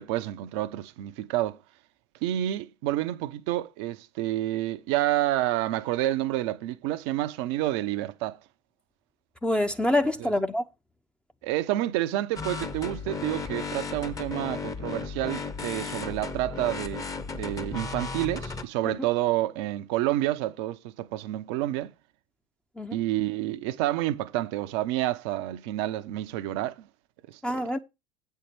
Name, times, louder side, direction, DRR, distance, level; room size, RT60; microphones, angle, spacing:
voice 1, 0.0-1.6 2.2-8.4 10.2-10.3 11.4-17.1 17.3-21.9 22.9-26.9 27.3-27.6, right 14 dB, 60° right, 0.7 m, -29 dB
voice 2, 9.4-10.6 18.8-19.0 22.8-23.0 27.4-27.8, left 1 dB, 5° left, 0.7 m, -26 dB
sound 1, 12.4-18.6, left 4 dB, 20° left, 1.1 m, -35 dB
8.5 x 4.5 x 6.9 m
figure-of-eight pair, 70°, 16 cm